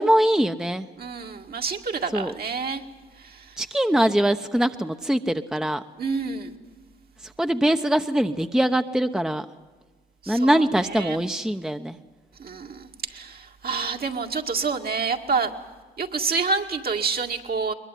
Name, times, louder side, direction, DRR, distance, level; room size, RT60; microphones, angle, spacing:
voice 1, 0.0-0.9 2.1-2.3 3.6-5.8 7.4-9.4 10.3-11.9, right 1 dB, 5° right, 7 dB, 1.0 m, -22 dB
voice 2, 1.0-2.8 3.2-3.5 6.0-6.6 10.2-11.2 12.4-15.5 16.0-17.7, right 4 dB, 55° right, 3 dB, 2.2 m, -28 dB
21.5 x 21.0 x 9.4 m, 1.3 s
supercardioid pair, 55°, 19 cm